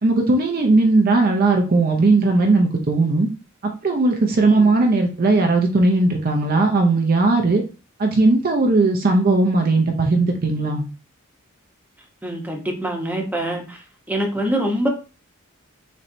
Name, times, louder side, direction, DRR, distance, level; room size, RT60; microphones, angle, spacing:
voice 1, 0.0-3.3 3.8-7.6 8.0-10.8, right 2 dB, 45° right, 2 dB, 0.6 m, -17 dB
voice 2, 4.4-4.7 12.2-13.8 14.1-14.9, equal, 10° right, 1 dB, 0.9 m, -25 dB
4.2 x 3.1 x 2.6 m, 0.34 s
head